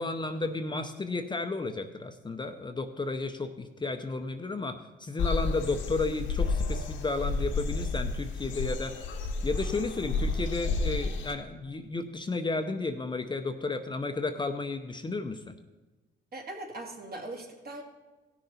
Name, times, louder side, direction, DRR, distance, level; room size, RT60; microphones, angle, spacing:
voice 1, 0.0-9.2 9.4-15.5, left 3 dB, 25° left, 6 dB, 0.7 m, -33 dB
sound 1, 5.2-11.3, left 3 dB, 80° left, 1.2 m, -31 dB
voice 2, 16.3-17.8, right 2 dB, 50° right, 0 dB, 2.6 m, -40 dB
16.5 x 6.7 x 4.3 m, 1.2 s
cardioid pair, 90°, 20 cm